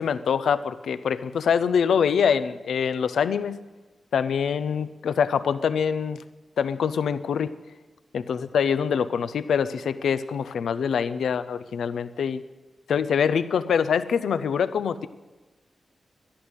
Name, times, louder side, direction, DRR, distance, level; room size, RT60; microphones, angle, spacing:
voice 1, 0.0-3.6 4.1-6.2 6.6-7.5 8.1-12.4 12.9-15.1, left 7 dB, 90° left, 13 dB, 0.6 m, -24 dB
13.0 x 11.0 x 8.3 m, 1.2 s
cardioid pair, 50°, 0 cm